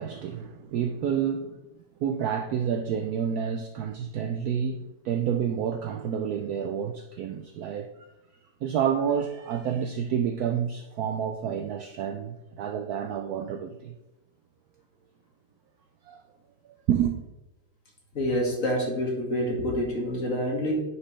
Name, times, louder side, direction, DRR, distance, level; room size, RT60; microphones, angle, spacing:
voice 1, 0.0-1.6 2.0-7.9 8.6-13.9 16.1-16.2 16.9-17.2, right 8 dB, 75° right, 0.9 m, -29 dB
voice 2, 18.1-20.7, equal, 45° left, 2.2 m, -27 dB
9.4 x 6.0 x 3.2 m
omnidirectional pair, 2.1 m